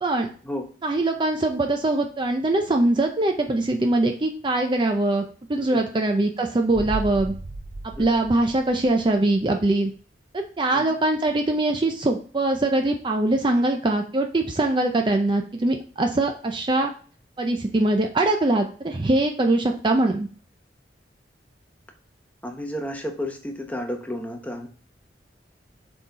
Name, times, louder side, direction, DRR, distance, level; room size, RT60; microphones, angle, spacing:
voice 1, 0.8-5.2 5.5-7.3 7.8-9.9 10.3-16.9 17.4-20.3, right 2 dB, 25° right, 4 dB, 0.5 m, -22 dB
voice 2, 5.7-6.0 8.0-8.1 10.7-10.9 22.4-24.7, left 1 dB, 10° left, 3 dB, 0.9 m, -32 dB
sound 1, 6.7-9.4 9.7-9.8, right 2 dB, 85° right, 0.9 m, -35 dB
6.7 x 3.8 x 4.0 m, 0.41 s
head